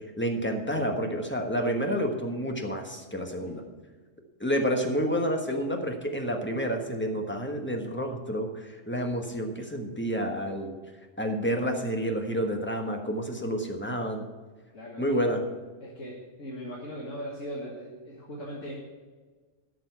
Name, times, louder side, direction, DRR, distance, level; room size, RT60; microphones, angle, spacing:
voice 1, 0.2-3.6 4.4-10.7 11.2-14.2 15.0-15.4, equal, 10° left, 3 dB, 1.2 m, -29 dB
voice 2, 14.7-15.2 15.8-18.7, equal, 90° left, -4 dB, 2.1 m, -39 dB
11.0 x 6.8 x 8.1 m, 1.4 s
omnidirectional pair, 1.3 m